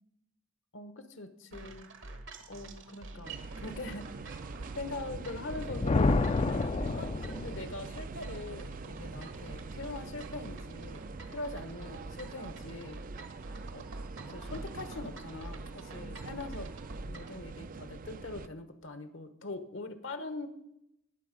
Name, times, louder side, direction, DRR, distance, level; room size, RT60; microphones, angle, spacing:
voice 1, 0.7-1.9 2.5-4.3 4.7-6.2 6.7-11.1 11.3-13.0 13.7-13.9 14.3-16.7 17.0-20.5, left 2 dB, 70° left, 11 dB, 1.2 m, -42 dB
sound 1, 1.5-17.4, right 2 dB, 70° right, 1.3 m, -47 dB
sound 2, 3.2-18.5, right 4 dB, 45° right, 0.4 m, -44 dB
Thunder, 5.4-7.8, left 3 dB, 30° left, 0.4 m, -29 dB
17.5 x 6.6 x 5.3 m, 0.83 s
head